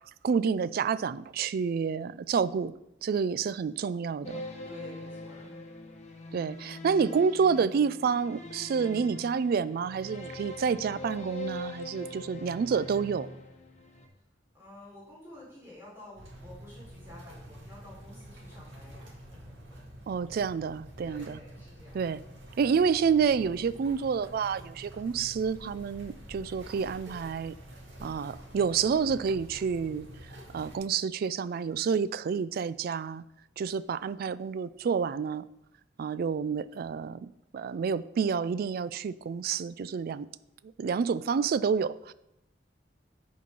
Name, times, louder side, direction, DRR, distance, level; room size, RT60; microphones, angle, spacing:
voice 1, 0.2-2.7 3.0-4.4 6.3-13.3 20.1-21.4 21.9-22.2 22.6-27.5 28.0-30.1 30.5-33.2 33.6-35.5 36.0-40.3 40.8-42.1, right 6 dB, 55° right, 0.3 m, -29 dB
sound 1, 4.2-14.1, left 1 dB, 40° left, 0.9 m, -42 dB
voice 2, 4.4-5.6 14.5-19.8 21.0-22.2, left 1 dB, 10° right, 3.5 m, -51 dB
sound 2, 16.2-30.8, equal, 85° right, 2.1 m, -48 dB
8.4 x 4.6 x 5.3 m
head